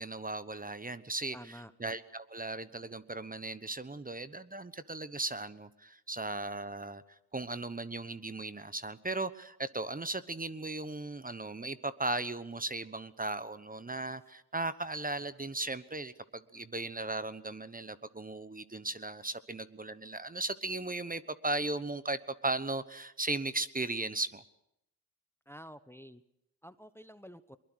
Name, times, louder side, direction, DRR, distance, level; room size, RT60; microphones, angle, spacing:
voice 1, 0.0-24.4, right 2 dB, 20° right, 14 dB, 1.1 m, -37 dB
voice 2, 1.3-1.7 25.5-26.2 26.6-27.6, equal, 5° left, 13 dB, 1.0 m, -49 dB
22.5 x 21.0 x 6.4 m, 0.80 s
supercardioid pair, 50°, 42 cm